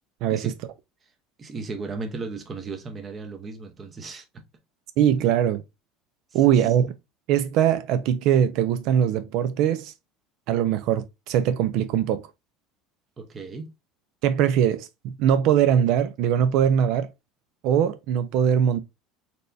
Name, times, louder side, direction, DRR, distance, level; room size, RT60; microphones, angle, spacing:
voice 1, 0.2-0.5 5.0-5.6 6.3-6.9 7.3-9.9 10.5-12.2 14.2-17.1 17.6-18.8, right 9 dB, 55° right, 0.4 m, -21 dB
voice 2, 1.4-4.2 6.3-6.8 13.2-13.7, right 4 dB, 20° right, 0.7 m, -36 dB
4.2 x 3.3 x 2.6 m
cardioid pair, 170°, 0 cm